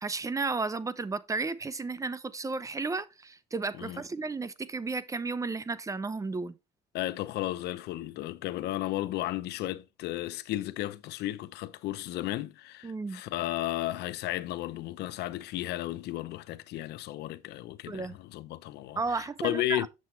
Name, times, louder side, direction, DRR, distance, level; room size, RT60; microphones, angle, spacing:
voice 1, 0.0-6.5 12.8-13.2 17.9-18.2 19.0-19.9, right 3 dB, 20° right, 0.7 m, -33 dB
voice 2, 6.9-19.9, left 15 dB, 80° left, 0.7 m, -34 dB
7.6 x 6.8 x 3.1 m
cardioid pair, 110°, 17 cm